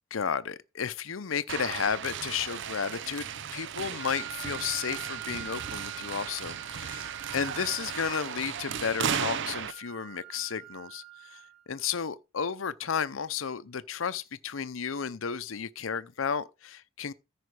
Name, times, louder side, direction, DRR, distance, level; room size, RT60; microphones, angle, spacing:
voice 1, 0.1-17.1, left 7 dB, 80° left, 0.7 m, -33 dB
sound 1, 1.5-9.7, right 8 dB, 65° right, 0.6 m, -35 dB
Wind instrument woodwind instrument, 3.9-11.9, right 12 dB, 40° right, 2.6 m, -45 dB
14.0 x 5.1 x 4.8 m
head